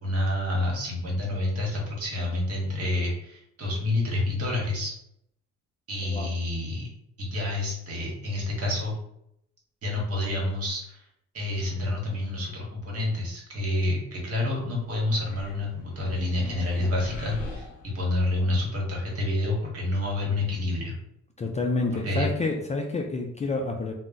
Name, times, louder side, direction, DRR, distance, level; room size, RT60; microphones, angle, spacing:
voice 1, 0.0-4.9 5.9-6.9 7.2-8.9 9.8-11.0 11.3-17.7 17.9-20.9 22.0-22.3, left 2 dB, 50° right, -2 dB, 1.3 m, -28 dB
sound 1, 15.1-18.5, left 2 dB, 85° left, 0.7 m, -41 dB
voice 2, 21.4-23.9, left 3 dB, 25° left, 2 dB, 0.4 m, -28 dB
2.3 x 2.1 x 3.9 m, 0.76 s
cardioid pair, 90°, 30 cm